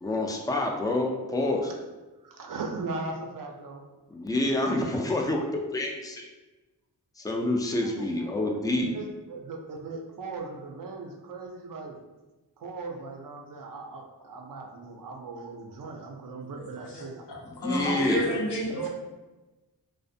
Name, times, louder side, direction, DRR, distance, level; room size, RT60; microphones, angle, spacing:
voice 1, 0.0-1.7 4.1-6.3 7.2-8.9 17.5-18.3 18.7-18.8, left 1 dB, 10° left, 1 dB, 0.4 m, -28 dB
voice 2, 2.2-3.9 7.8-12.0 12.6-17.3 18.0-18.2 18.7-18.9, right 3 dB, 55° right, 2 dB, 0.5 m, -39 dB
voice 3, 17.6-18.9, left 1 dB, 75° left, -2 dB, 0.7 m, -29 dB
2.4 x 2.1 x 2.6 m, 1.1 s
cardioid pair, 45°, 41 cm